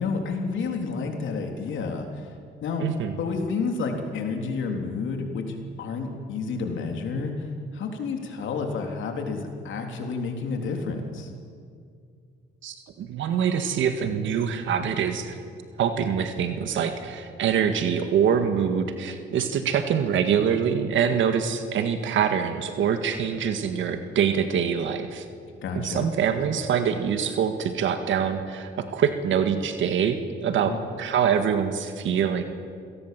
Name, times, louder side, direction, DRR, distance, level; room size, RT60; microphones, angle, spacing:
voice 1, 0.0-2.3 2.6-2.9 3.2-11.3 25.6-26.1 30.6-30.8, left 4 dB, 75° left, 3 dB, 3.5 m, -30 dB
voice 2, 2.8-3.1 12.6-15.4 15.8-25.3 25.8-32.4, right 7 dB, 75° right, 7 dB, 1.8 m, -25 dB
27.0 x 17.5 x 7.6 m, 2.3 s
cardioid pair, 90°, 20 cm